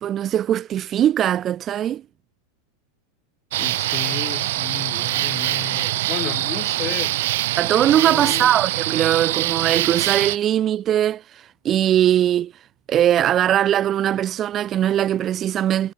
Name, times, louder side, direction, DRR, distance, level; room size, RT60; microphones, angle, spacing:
voice 1, 0.0-2.0 7.6-12.5 12.9-15.9, right 11 dB, 30° right, 1.8 m, -20 dB
sound 1, 3.5-10.4, right 16 dB, 55° right, 0.7 m, -24 dB
voice 2, 3.6-7.1 7.9-8.5, left 13 dB, 35° left, 7.8 m, -33 dB
figure-of-eight pair, 90°, 0 cm